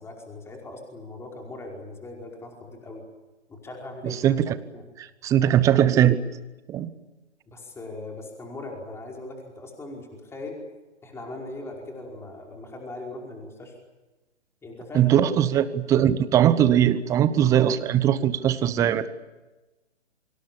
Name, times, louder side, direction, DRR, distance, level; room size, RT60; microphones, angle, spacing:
voice 1, 0.0-3.0 3.5-4.2 4.7-4.8 7.5-10.6 11.0-13.7 14.6-15.3, left 2 dB, 5° left, 0 dB, 5.1 m, -39 dB
voice 2, 4.0-4.6 5.0-6.2 6.7-6.9 14.9-19.1, right 10 dB, 10° right, 15 dB, 0.8 m, -20 dB
28.5 x 25.5 x 7.2 m, 1.1 s
figure-of-eight pair, 135°, 35 cm